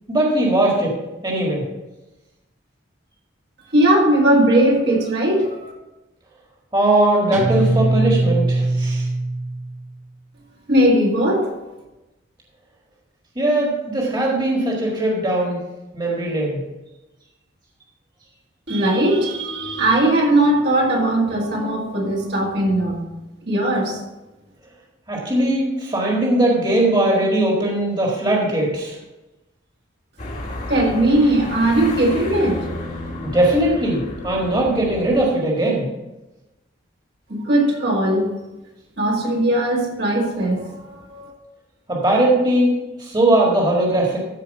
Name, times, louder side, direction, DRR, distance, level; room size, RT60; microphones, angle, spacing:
voice 1, 0.1-1.0 1.2-1.7 6.7-9.1 13.3-15.6 15.9-16.6 25.1-29.0 33.2-35.9 41.9-44.2, right 1 dB, 20° right, -2 dB, 1.7 m, -19 dB
voice 2, 3.7-5.7 10.7-11.5 18.7-23.1 23.5-24.0 30.7-32.7 37.3-38.3 39.0-41.3, right 1 dB, 60° right, -2 dB, 2.1 m, -19 dB
Guitar, 7.3-9.9, right 2 dB, 40° right, 0.7 m, -21 dB
sound 1, 30.2-35.3, left 1 dB, 40° left, 1.5 m, -32 dB
14.0 x 4.8 x 5.4 m, 1.0 s
head